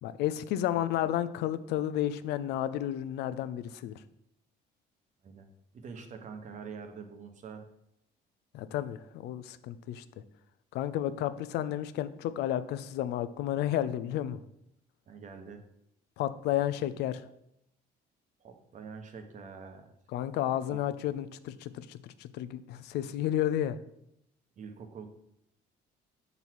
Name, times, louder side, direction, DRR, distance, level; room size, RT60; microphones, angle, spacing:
voice 1, 0.0-4.0 8.5-10.0 10.7-14.4 16.2-17.2 20.1-23.8, left 12 dB, 80° left, 13 dB, 0.5 m, -32 dB
voice 2, 5.7-7.7 15.1-15.6 18.4-19.9 20.7-20.8 24.6-25.1, right 5 dB, 45° right, 5 dB, 1.1 m, -45 dB
7.1 x 4.1 x 4.6 m, 0.78 s
cardioid pair, 110°, 17 cm